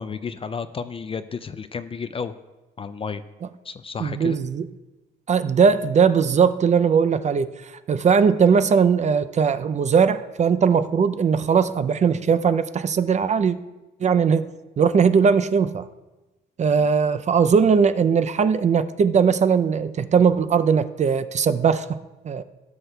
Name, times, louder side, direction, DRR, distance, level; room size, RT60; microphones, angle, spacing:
voice 1, 0.0-2.3 2.8-3.2 3.6-4.4 16.8-16.9, left 5 dB, 30° left, 12 dB, 0.3 m, -32 dB
voice 2, 4.0-4.6 5.3-7.5 7.9-13.6 14.0-14.4 14.8-15.9 16.6-22.0 22.2-22.4, right 6 dB, 35° right, 11 dB, 0.4 m, -19 dB
15.5 x 6.4 x 2.3 m, 1.1 s
cardioid pair, 90°, 20 cm